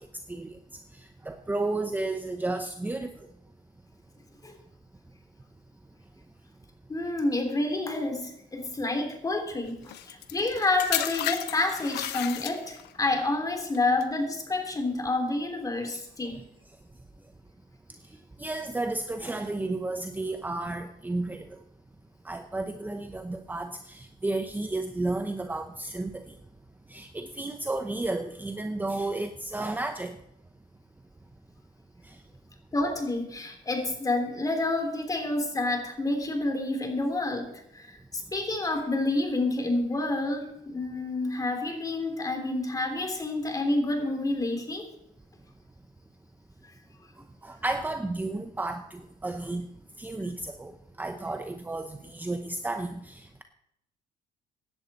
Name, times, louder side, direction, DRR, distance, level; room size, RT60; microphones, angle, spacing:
voice 1, 0.0-3.3 15.9-16.4 18.1-21.6 22.2-26.4 26.9-30.2 32.0-32.2 47.4-49.7 50.0-53.4, right 2 dB, 10° right, 7 dB, 0.8 m, -33 dB
voice 2, 6.9-16.5 32.7-37.5 37.7-44.9, left 2 dB, 20° left, 5 dB, 3.2 m, -29 dB
sound 1, 9.9-13.0 13.7-14.0, left 12 dB, 80° left, 1.0 m, -33 dB
16.0 x 11.0 x 4.3 m, 0.78 s
cardioid pair, 110°, 17 cm